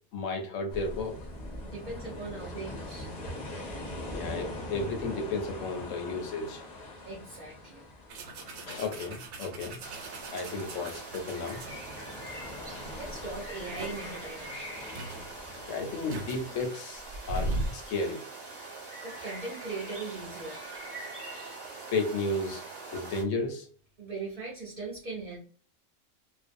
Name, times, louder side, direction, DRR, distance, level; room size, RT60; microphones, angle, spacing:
voice 1, 0.1-1.2 4.1-6.6 8.7-9.8 10.3-11.6 15.7-18.2 21.9-23.7, left 3 dB, 75° left, 3 dB, 0.9 m, -33 dB
sound 1, 0.7-16.6, left 1 dB, 40° left, 0.6 m, -43 dB
voice 2, 1.6-3.1 6.9-7.9 10.7-10.9 12.9-15.3 18.6-18.8 19.0-21.1 24.0-25.4, right 3 dB, 45° right, -4 dB, 0.6 m, -40 dB
sound 2, 8.1-12.1 12.7-12.9 13.2-14.2 14.7-14.8 14.9-17.8, right 2 dB, 80° right, 1.0 m, -38 dB
sound 3, 9.8-23.2, right 2 dB, 25° right, 1.0 m, -43 dB
2.5 x 2.1 x 2.5 m, 0.40 s
omnidirectional pair, 1.4 m